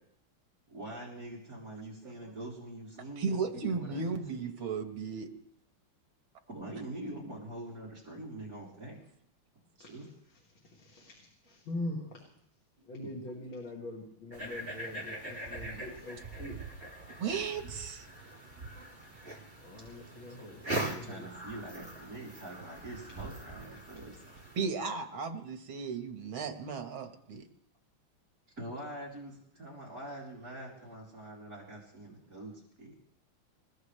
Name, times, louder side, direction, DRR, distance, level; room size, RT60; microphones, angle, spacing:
voice 1, 0.7-4.2 6.5-9.0 9.8-10.1 20.7-24.2 28.6-32.9, right 1 dB, 45° right, -5 dB, 3.9 m, -44 dB
voice 2, 3.2-5.3 17.2-18.1 24.6-27.5, right 5 dB, 85° right, 6 dB, 2.3 m, -35 dB
voice 3, 10.6-12.2 12.8-16.6 19.6-21.3, left 1 dB, 70° left, -2 dB, 3.2 m, -42 dB
sound 1, 14.3-24.7, right 2 dB, 25° right, 3.3 m, -42 dB
28.0 x 15.0 x 3.4 m, 0.71 s
omnidirectional pair, 2.2 m